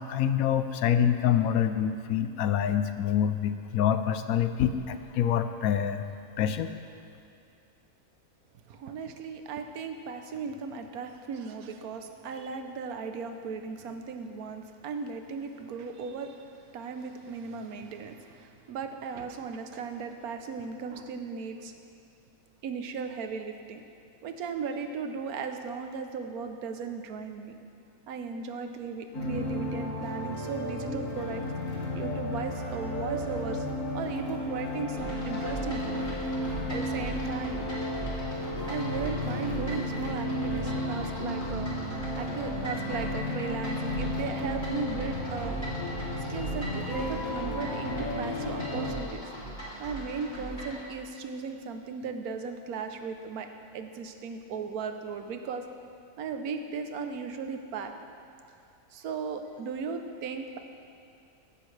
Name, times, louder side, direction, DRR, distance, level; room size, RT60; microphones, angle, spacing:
voice 1, 0.0-6.1 6.4-6.7, left 9 dB, 75° left, 10 dB, 1.0 m, -26 dB
voice 2, 8.7-21.7 22.6-23.8 24.2-27.6 28.1-31.4 31.9-33.7 33.9-36.1 36.7-37.6 38.7-41.7 42.2-45.6 46.3-49.3 49.8-55.6 56.2-57.9 58.9-60.6, right 5 dB, 80° right, 6 dB, 1.2 m, -37 dB
sound 1, 29.1-48.9, left 1 dB, 60° left, 2.0 m, -33 dB
sound 2, 35.0-50.8, right 1 dB, 30° left, 2.4 m, -39 dB
15.0 x 10.5 x 3.3 m, 2.5 s
omnidirectional pair, 1.5 m